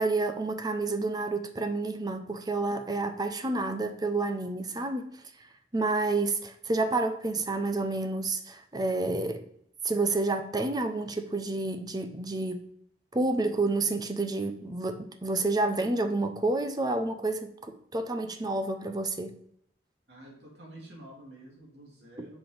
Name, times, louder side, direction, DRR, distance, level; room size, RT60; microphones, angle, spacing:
voice 1, 0.0-5.1 5.7-9.4 9.8-12.6 13.1-19.4 22.2-22.3, right 2 dB, 25° right, 0.7 m, -29 dB
voice 2, 20.1-22.4, right 1 dB, 75° right, 2.8 m, -49 dB
6.8 x 6.0 x 5.1 m
head